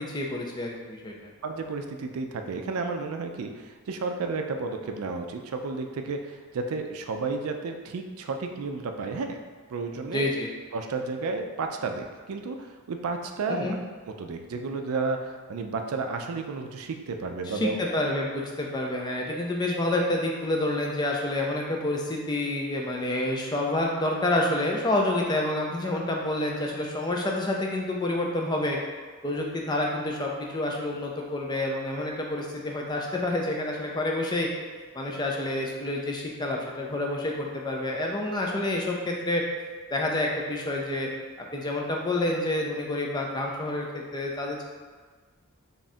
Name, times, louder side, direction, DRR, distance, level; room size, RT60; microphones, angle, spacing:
voice 1, 0.1-1.3 10.1-10.5 13.5-13.8 17.5-28.8 29.2-34.5 34.9-39.4 39.9-41.1 41.5-44.6, left 1 dB, 20° left, -1 dB, 0.4 m, -28 dB
voice 2, 1.4-9.4 9.7-10.3 10.7-13.7 14.2-17.8, right 4 dB, 75° right, 5 dB, 0.4 m, -32 dB
3.6 x 2.4 x 4.1 m, 1.4 s
head